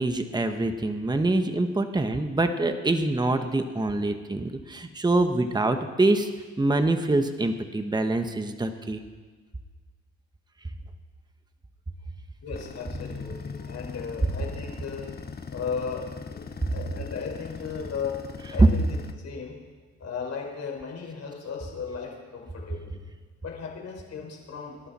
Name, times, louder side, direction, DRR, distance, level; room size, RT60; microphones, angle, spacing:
voice 1, 0.0-6.3 6.6-9.0 18.6-18.7, right 2 dB, 15° right, 7 dB, 1.2 m, -24 dB
voice 2, 12.4-15.1 15.5-18.2 18.5-18.9 19.2-19.6 20.0-23.0 23.4-24.9, left 6 dB, 60° left, -1 dB, 5.2 m, -36 dB
sound 1, 12.5-19.1, left 5 dB, 30° left, 1.2 m, -40 dB
27.5 x 12.0 x 4.4 m, 1.4 s
cardioid pair, 90°, 30 cm